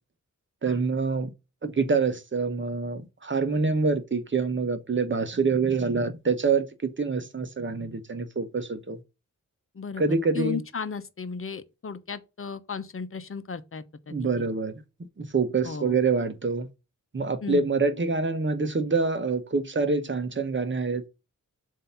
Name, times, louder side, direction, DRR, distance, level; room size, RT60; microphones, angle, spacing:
voice 1, 0.6-1.3 1.6-9.0 10.0-10.6 14.1-14.8 15.2-16.7 17.1-21.2, right 4 dB, 40° right, 1.0 m, -26 dB
voice 2, 9.7-14.5 15.6-16.0 17.4-17.7, left 5 dB, 45° left, 0.8 m, -35 dB
7.6 x 2.8 x 5.7 m
wide cardioid pair, 135°, 30 cm